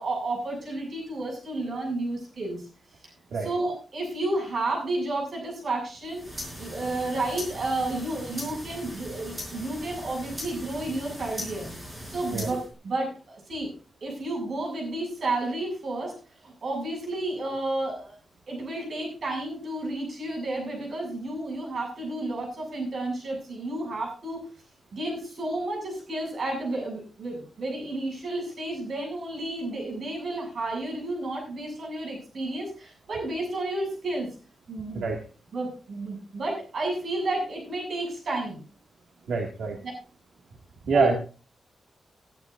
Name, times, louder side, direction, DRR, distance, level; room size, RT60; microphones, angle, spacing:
voice 1, 0.0-2.7 3.4-6.2 6.6-11.7 12.0-12.6 12.8-13.7 14.0-16.1 16.4-18.2 18.5-24.4 24.9-34.3 34.7-35.0 35.5-38.6 40.9-41.1, right 2 dB, 50° right, 1 dB, 7.3 m, -31 dB
sound 1, 6.0-12.7, equal, 15° right, 5.4 m, -39 dB
voice 2, 39.3-39.8 40.9-41.1, right 4 dB, 80° right, 1 dB, 2.2 m, -25 dB
20.5 x 11.5 x 2.7 m, 0.35 s
wide cardioid pair, 165°, 0 cm